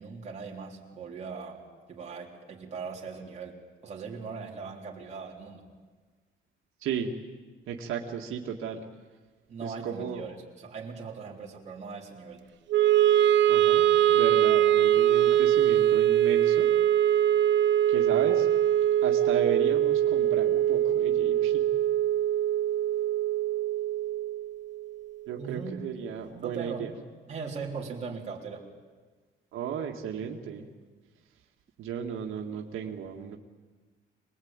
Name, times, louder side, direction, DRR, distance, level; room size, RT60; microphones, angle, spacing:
voice 1, 0.0-1.6 1.9-5.7 9.5-12.4 25.4-25.8 26.4-26.9 27.3-28.7, right 5 dB, 35° right, -2 dB, 3.7 m, -39 dB
voice 2, 6.8-7.1 7.7-8.8 9.6-10.2 13.5-16.7 17.9-18.5 19.0-21.6 25.3-26.9 29.5-30.7 31.8-33.4, right 7 dB, 85° right, 1 dB, 1.9 m, -34 dB
Wind instrument woodwind instrument, 12.7-24.9, right 11 dB, 65° right, 0.7 m, -23 dB
26.0 x 20.5 x 8.9 m, 1.4 s
cardioid pair, 175°, 20 cm